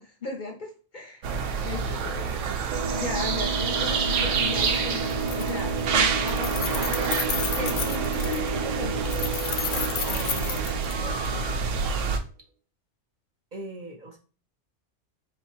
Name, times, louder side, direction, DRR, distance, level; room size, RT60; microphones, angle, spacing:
voice 1, 0.0-1.3 1.6-2.4 2.9-7.2 7.5-9.1, left 4 dB, 50° left, 2 dB, 0.7 m, -37 dB
sound 1, 1.2-12.2, right 5 dB, 85° right, 1.0 m, -28 dB
sound 2, 2.7-12.0, right 4 dB, 65° right, 0.4 m, -33 dB
Keys jangling, 4.6-4.8 5.1-5.8 6.1-8.5 9.0-11.3, left 9 dB, 85° left, 0.9 m, -32 dB
voice 2, 7.6-8.0 8.3-8.4 10.0-10.9 13.5-14.2, right 2 dB, 45° right, 1 dB, 0.8 m, -40 dB
4.4 x 2.1 x 4.3 m, 0.36 s
omnidirectional pair, 1.2 m